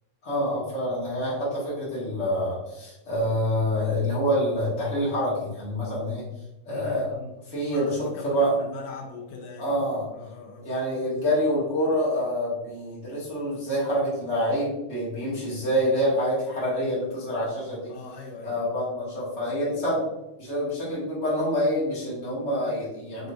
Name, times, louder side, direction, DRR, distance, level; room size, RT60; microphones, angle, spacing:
voice 1, 0.2-6.3 6.6-7.1 7.5-8.5 9.6-10.1 10.6-17.9 18.4-20.1 20.4-23.3, equal, 60° left, -7 dB, 0.6 m, -26 dB
voice 2, 6.7-7.3 7.7-10.7 17.5-18.7 19.9-20.0, left 4 dB, 90° left, -1 dB, 1.5 m, -41 dB
6.3 x 3.4 x 2.5 m, 0.97 s
omnidirectional pair, 3.9 m